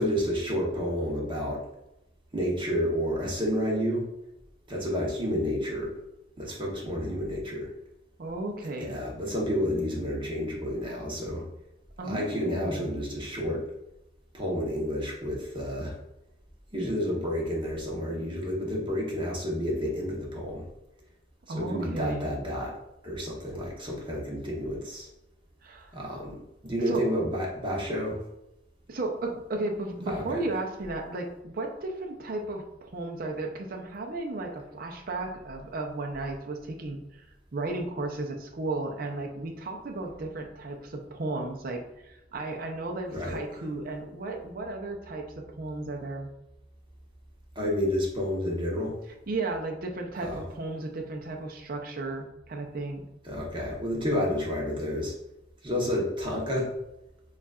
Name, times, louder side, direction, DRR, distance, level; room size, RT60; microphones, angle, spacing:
voice 1, 0.0-1.6 2.3-4.0 4.7-5.9 6.4-7.7 8.8-11.4 12.0-13.7 14.3-15.9 16.7-20.6 21.5-22.7 23.0-25.1 25.9-26.3 26.6-28.2 30.1-30.4 43.1-43.4 47.5-49.0 50.2-50.4 53.2-55.1 55.6-56.7, equal, 30° right, -3 dB, 0.9 m, -30 dB
voice 2, 8.2-9.0 12.0-13.1 21.5-22.3 25.6-26.0 26.9-27.0 28.9-46.3 49.3-53.0, right 2 dB, 55° right, 2 dB, 0.6 m, -34 dB
6.8 x 2.4 x 2.4 m, 0.88 s
head